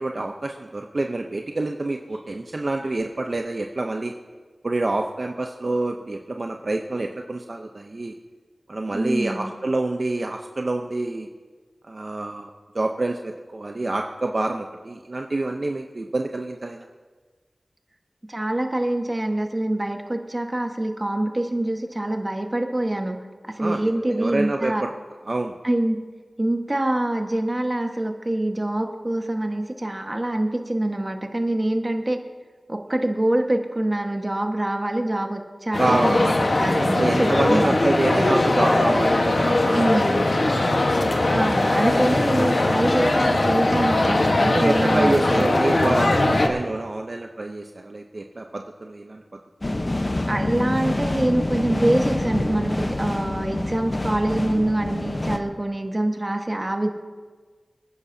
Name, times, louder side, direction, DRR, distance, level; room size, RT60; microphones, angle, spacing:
voice 1, 0.0-4.1 4.6-8.1 8.7-11.3 11.9-12.5 12.7-16.9 23.6-24.9 25.3-25.5 35.8-36.4 37.0-39.8 40.4-40.7 44.5-49.2, right 2 dB, 55° right, 3 dB, 0.7 m, -27 dB
voice 2, 8.9-9.5 18.2-23.2 23.5-24.8 25.6-26.1 26.4-32.2 32.7-37.8 39.7-40.3 41.3-45.5 50.3-56.9, right 1 dB, 30° right, 4 dB, 1.4 m, -25 dB
sound 1, 35.7-46.5, left 2 dB, 70° left, 1.3 m, -20 dB
sound 2, 49.6-55.4, left 1 dB, 40° left, 0.9 m, -26 dB
25.0 x 9.9 x 2.8 m, 1.4 s
cardioid pair, 45°, 0 cm